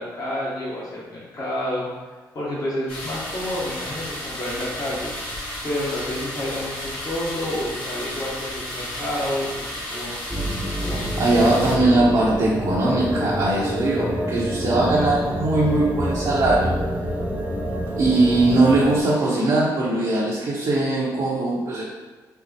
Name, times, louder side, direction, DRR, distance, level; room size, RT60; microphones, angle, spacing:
voice 1, 0.0-1.9 2.3-5.4 5.6-10.2 10.8-11.2, left 1 dB, 50° left, -7 dB, 1.1 m, -29 dB
sound 1, 2.9-11.8, left 1 dB, 80° left, 1.3 m, -33 dB
sound 2, 10.3-19.0, equal, 20° right, 0.6 m, -27 dB
voice 2, 11.2-16.7 18.0-21.8, right 2 dB, 65° right, -7 dB, 0.8 m, -20 dB
4.3 x 2.1 x 2.8 m, 1.3 s
supercardioid pair, 60°, 8 cm